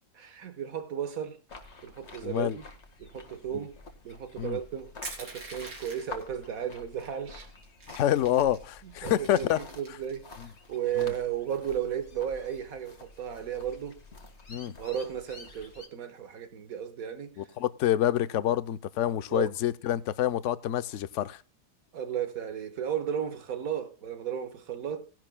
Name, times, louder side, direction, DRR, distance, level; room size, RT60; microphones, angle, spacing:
voice 1, 0.1-1.4 1.8-2.6 3.0-3.8 4.0-7.5 8.8-10.3 10.7-14.0 14.8-17.4 19.3-19.5 21.9-25.1, right 9 dB, 60° right, 1.7 m, -34 dB
sound 1, 1.5-15.9, left 3 dB, 45° left, 1.7 m, -49 dB
voice 2, 2.2-2.6 4.4-4.6 7.9-9.6 11.0-11.1 14.5-14.7 17.4-21.4, left 12 dB, 60° left, 0.9 m, -27 dB
Crushing, 5.0-6.2 7.0-7.1 7.4-8.6 9.1-10.2, right 2 dB, 90° right, 3.9 m, -43 dB
18.0 x 10.5 x 2.2 m
omnidirectional pair, 1.7 m